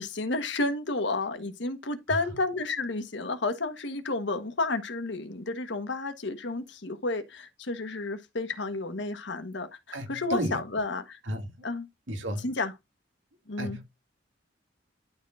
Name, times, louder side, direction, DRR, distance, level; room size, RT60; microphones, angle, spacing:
voice 1, 0.0-11.2 11.6-11.9 12.4-12.7 13.5-13.8, left 3 dB, 65° left, 1.3 m, -31 dB
voice 2, 9.9-10.6 11.3-11.7 12.1-12.5 13.6-13.8, equal, 90° right, 2.2 m, -33 dB
12.0 x 4.4 x 2.5 m
head